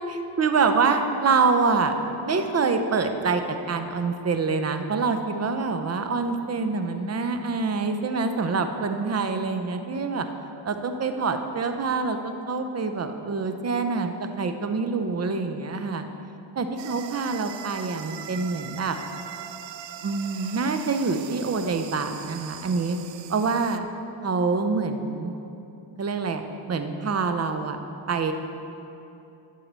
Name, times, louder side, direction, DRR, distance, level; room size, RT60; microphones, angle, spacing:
voice 1, 0.0-1.9 2.2-10.3 10.6-16.0 16.6-19.0 20.0-23.0 23.3-23.9 24.2-25.3 26.0-26.4 26.7-27.8 28.1-28.3, right 4 dB, 30° right, 7 dB, 0.8 m, -26 dB
sound 1, 16.8-23.8, right 10 dB, 60° right, 0.6 m, -41 dB
11.0 x 4.8 x 7.5 m, 2.9 s
cardioid pair, 90°, 50 cm